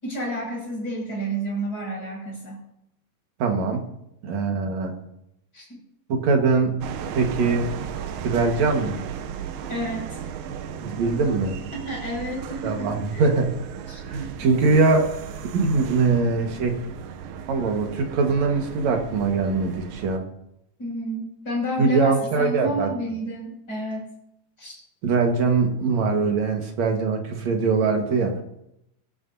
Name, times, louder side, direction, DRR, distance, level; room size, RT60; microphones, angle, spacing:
voice 1, 0.0-2.6 5.5-5.8 9.7-10.2 11.7-13.3 13.9-14.5 20.8-24.1 24.6-24.8, right 1 dB, 25° left, -3 dB, 7.0 m, -30 dB
voice 2, 3.4-3.9 4.2-5.0 6.1-6.8 7.1-7.7 8.2-9.0 10.8-11.6 12.6-13.6 14.1-15.1 15.5-16.8 17.5-20.2 21.8-22.9 25.0-28.4, right 4 dB, 55° right, 3 dB, 2.4 m, -22 dB
sound 1, 6.8-20.2, right 8 dB, 75° right, 2.1 m, -35 dB
25.5 x 12.0 x 2.7 m, 0.81 s
omnidirectional pair, 4.5 m